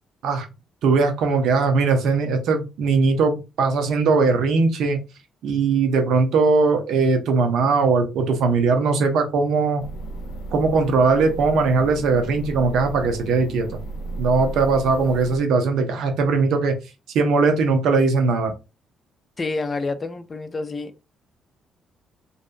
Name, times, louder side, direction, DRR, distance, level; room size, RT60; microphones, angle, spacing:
voice 1, 0.8-5.0 5.4-9.8 10.5-13.7 14.2-16.8 17.1-18.5, right 4 dB, 80° right, 0.7 m, -20 dB
sound 1, 9.8-15.4, right 2 dB, 80° left, 0.5 m, -34 dB
voice 2, 19.4-21.0, left 3 dB, 30° left, 0.4 m, -28 dB
2.7 x 2.3 x 2.5 m
cardioid pair, 90°, 0 cm